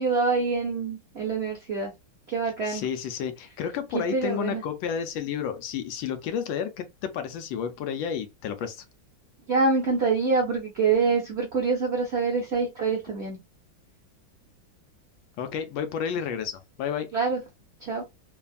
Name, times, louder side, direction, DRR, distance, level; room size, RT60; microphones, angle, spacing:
voice 1, 0.0-1.9 2.3-2.8 4.1-4.6 9.5-13.4 17.1-17.4 17.9-18.0, right 4 dB, 65° right, 0.6 m, -25 dB
voice 2, 2.6-8.8 15.4-17.1, left 8 dB, 75° left, 1.3 m, -31 dB
3.4 x 2.2 x 2.3 m
omnidirectional pair, 2.2 m